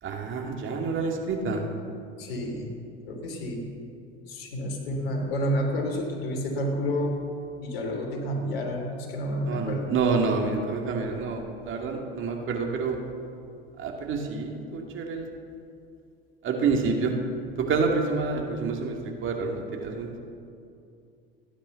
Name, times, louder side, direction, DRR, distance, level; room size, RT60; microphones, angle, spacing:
voice 1, 0.0-1.6 9.5-13.0 13.8-15.3 16.4-17.1 17.6-20.1, right 4 dB, 40° right, 1 dB, 2.5 m, -28 dB
voice 2, 2.2-2.7 3.1-3.7 4.3-7.2 7.6-9.9, equal, 75° left, 1 dB, 3.3 m, -29 dB
14.0 x 10.0 x 7.1 m, 2.5 s
hypercardioid pair, 80°, 30 cm